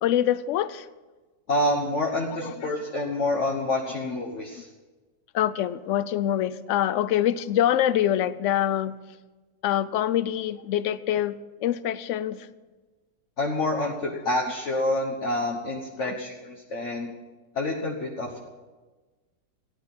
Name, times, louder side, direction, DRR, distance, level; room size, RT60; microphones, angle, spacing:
voice 1, 0.0-0.9 2.4-2.7 5.3-8.9 9.6-12.5 16.0-16.1, left 11 dB, 80° left, 16 dB, 0.6 m, -25 dB
voice 2, 1.5-4.7 13.4-17.1 17.5-18.5, left 1 dB, 45° left, 0 dB, 1.5 m, -27 dB
16.0 x 10.5 x 6.0 m, 1.3 s
omnidirectional pair, 1.8 m